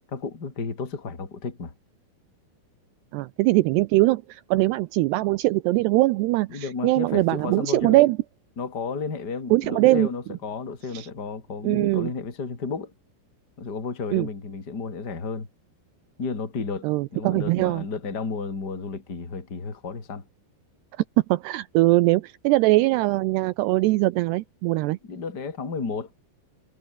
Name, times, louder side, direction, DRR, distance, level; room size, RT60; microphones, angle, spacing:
voice 1, 0.1-1.7 6.5-8.0 8.6-12.9 13.6-15.5 16.2-16.9 17.1-20.2 25.1-26.1, left 4 dB, 25° left, 3.7 m, -32 dB
voice 2, 3.1-8.2 9.5-10.1 10.9-11.1 11.6-12.1 14.1-14.3 16.8-17.9 21.3-25.0, right 19 dB, 85° right, 2.4 m, -21 dB
omnidirectional pair, 5.4 m